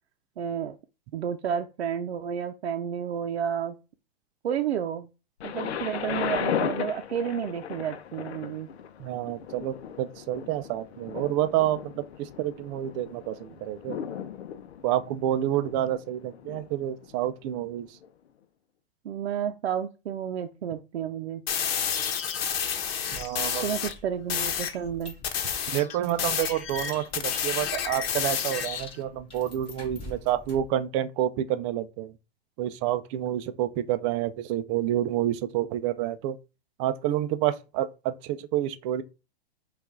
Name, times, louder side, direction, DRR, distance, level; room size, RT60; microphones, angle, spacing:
voice 1, 0.4-0.7 1.1-3.8 4.4-5.1 5.4-8.7 19.0-21.4 23.6-25.1, right 8 dB, 85° right, 0.6 m, -31 dB
Thunder, 5.4-17.2 18.0-18.1, left 9 dB, 85° left, 0.7 m, -36 dB
voice 2, 9.0-14.0 14.8-17.9 23.1-23.6 25.7-32.1 32.6-36.4 36.8-39.0, right 12 dB, 30° right, 0.4 m, -28 dB
sound 1, 21.5-23.9 24.3-24.8 25.2-28.9, left 8 dB, 65° left, 1.0 m, -30 dB
sound 2, 22.5-30.8, left 2 dB, 15° left, 1.9 m, -47 dB
5.3 x 2.5 x 3.7 m
hypercardioid pair, 135°, 32 cm